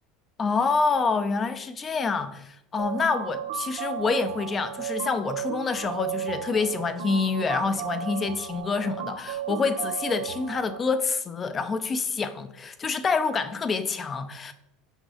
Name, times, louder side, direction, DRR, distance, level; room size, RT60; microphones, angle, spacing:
voice 1, 0.4-14.5, left 4 dB, 25° left, 11 dB, 0.7 m, -27 dB
sound 1, 2.8-10.8, right 9 dB, 80° right, 0.8 m, -34 dB
6.4 x 5.3 x 4.9 m, 0.79 s
supercardioid pair, 130°, 0 cm